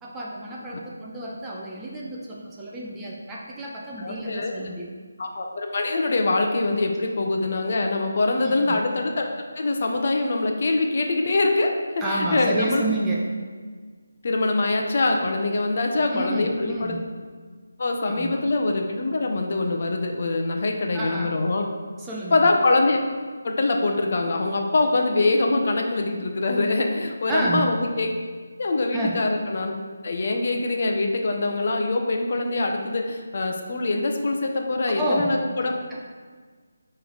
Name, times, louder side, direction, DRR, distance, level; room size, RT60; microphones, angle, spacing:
voice 1, 0.0-4.9 8.4-8.8 12.0-13.4 16.1-17.0 18.1-18.4 20.9-21.4 22.0-22.5 27.3-27.7 28.9-29.3 34.9-36.0, right 1 dB, 10° right, -4 dB, 0.5 m, -30 dB
voice 2, 4.0-4.7 5.2-9.3 9.5-11.7 12.2-12.8 14.2-16.9 17.8-21.6 22.3-23.0 23.4-28.1 28.6-29.8 30.0-35.7, left 2 dB, 45° left, 2 dB, 0.8 m, -23 dB
9.4 x 3.3 x 4.0 m, 1.5 s
figure-of-eight pair, 170°, 0 cm